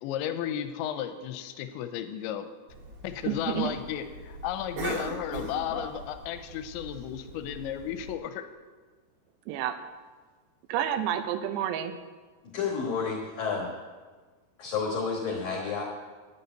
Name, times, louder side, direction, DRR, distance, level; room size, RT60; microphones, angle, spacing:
voice 1, 0.0-2.5 3.0-8.5, left 10 dB, 85° left, 9 dB, 2.9 m, -34 dB
Cough, 2.7-8.1, right 2 dB, 45° right, 2.5 m, -40 dB
voice 2, 3.3-3.7 9.5-9.8 10.7-12.0, right 10 dB, 80° right, 10 dB, 2.7 m, -29 dB
voice 3, 12.5-13.7 14.6-15.8, left 5 dB, 65° left, -1 dB, 2.5 m, -30 dB
11.0 x 6.7 x 9.0 m, 1.4 s
omnidirectional pair, 5.3 m